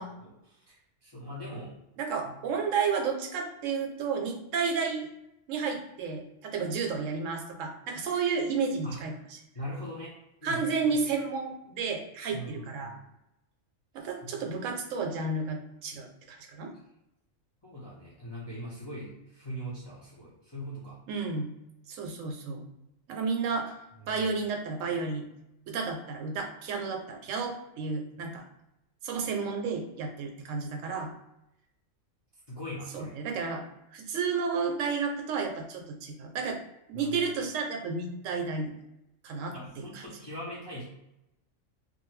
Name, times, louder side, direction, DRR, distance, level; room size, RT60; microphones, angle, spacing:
voice 1, 0.2-1.8 2.2-2.3 8.8-9.0 9.5-11.0 12.3-13.0 14.0-14.5 17.6-21.0 24.0-24.3 32.5-33.2 36.9-37.2 39.5-40.8, equal, 30° left, -7 dB, 0.4 m, -41 dB
voice 2, 2.0-5.1 5.5-9.1 10.4-13.0 13.9-16.7 21.1-21.5 21.9-22.7 23.1-23.7 24.1-25.3 25.7-28.4 29.0-31.1 32.9-33.6 33.9-36.6 36.9-38.7 39.2-40.0, right 5 dB, 75° right, 3 dB, 0.9 m, -32 dB
2.6 x 2.2 x 3.0 m, 0.86 s
omnidirectional pair, 1.4 m